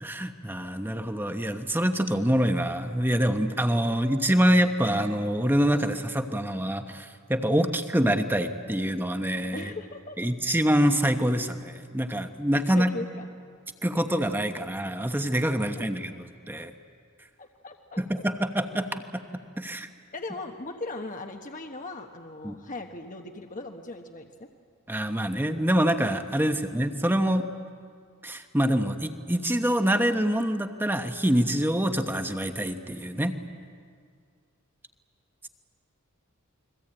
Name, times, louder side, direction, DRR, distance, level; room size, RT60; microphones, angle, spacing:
voice 1, 0.0-9.7 10.2-12.9 13.8-16.7 18.0-19.0 19.6-19.9 22.4-22.6 24.9-27.5 28.2-33.3, equal, 10° right, 7 dB, 1.1 m, -25 dB
voice 2, 9.5-10.3 12.7-13.3 15.6-15.7 16.1-16.2 17.4-18.0 20.1-24.5 26.4-26.6, left 2 dB, 35° left, 4 dB, 1.2 m, -39 dB
29.0 x 22.0 x 8.9 m, 2.1 s
head